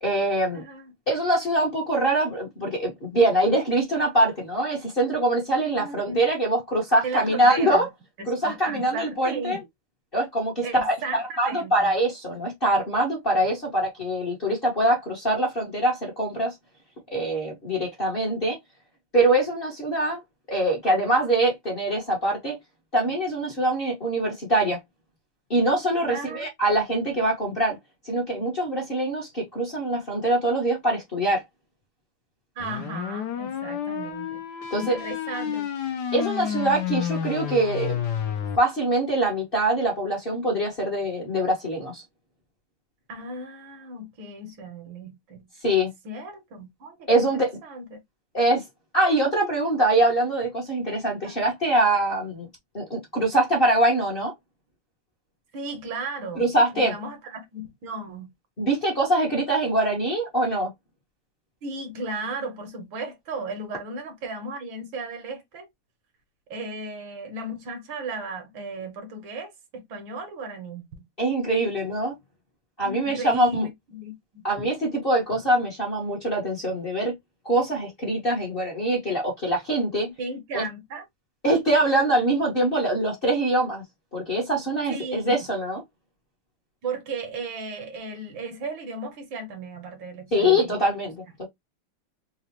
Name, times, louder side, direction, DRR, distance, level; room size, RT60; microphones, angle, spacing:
voice 1, 0.0-0.6 1.1-7.9 8.3-9.6 10.1-16.5 17.1-18.6 19.1-20.2 20.5-22.6 22.9-24.8 25.5-27.8 28.0-31.4 34.7-34.9 36.1-38.0 38.6-42.0 45.6-45.9 47.1-47.5 48.3-48.6 48.9-52.5 52.7-54.3 56.3-56.9 58.6-60.7 71.2-72.1 72.8-73.7 74.4-77.1 77.4-80.1 80.5-80.6 81.4-83.8 84.1-85.8 90.3-91.4, right 1 dB, 35° left, 1.0 m, -23 dB
voice 2, 0.5-0.9 5.7-6.3 7.0-7.9 8.2-9.6 10.6-11.9 26.1-26.5 32.6-34.4 34.7-35.7 43.1-45.5 46.0-48.0 51.2-51.4 55.5-56.4 56.7-58.3 61.6-65.7 66.5-71.0 72.8-74.4 80.2-81.0 84.9-85.4 86.8-90.8, right 2 dB, 65° right, 1.5 m, -35 dB
sound 1, 32.6-38.6, left 8 dB, 65° left, 1.1 m, -30 dB
4.0 x 2.4 x 2.9 m
omnidirectional pair, 2.4 m